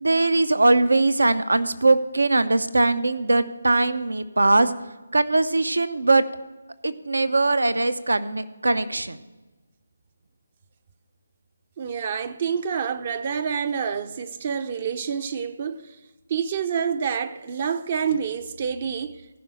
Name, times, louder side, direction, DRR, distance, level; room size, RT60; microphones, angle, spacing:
voice 1, 0.0-4.7 5.1-6.2 6.8-9.2, right 2 dB, 80° right, 0.7 m, -21 dB
voice 2, 11.8-16.0 16.3-19.4, right 7 dB, 40° right, 0.5 m, -28 dB
14.5 x 5.5 x 6.3 m
figure-of-eight pair, 155°, 0 cm